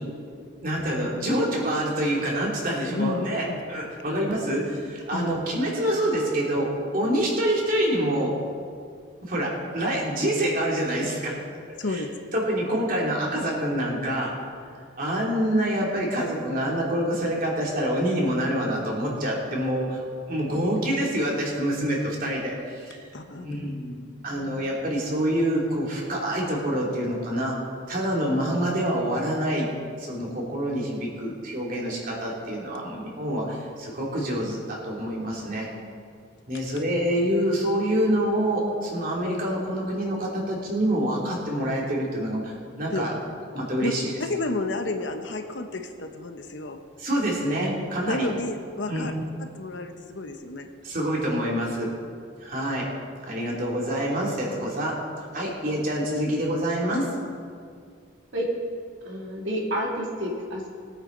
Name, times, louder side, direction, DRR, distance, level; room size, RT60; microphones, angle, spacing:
voice 1, 0.6-8.3 9.2-11.3 11.9-12.0 12.3-14.3 15.0-20.0 20.3-23.0 23.4-27.6 27.9-29.7 30.0-35.7 36.5-43.2 43.5-44.1 47.0-48.3 48.9-49.1 50.8-51.9 52.4-52.9 53.2-55.0 55.3-57.1, equal, 45° right, -3 dB, 3.0 m, -26 dB
voice 2, 3.0-3.6 5.1-5.4 11.8-12.1 23.1-23.6 42.9-43.0 43.8-43.9 44.2-46.8 48.0-49.1 49.4-50.7, left 2 dB, 65° left, 5 dB, 1.0 m, -31 dB
voice 3, 4.1-4.5 58.3-58.5 59.0-60.7, equal, 75° right, -3 dB, 2.7 m, -30 dB
21.0 x 9.0 x 4.0 m, 2.2 s
head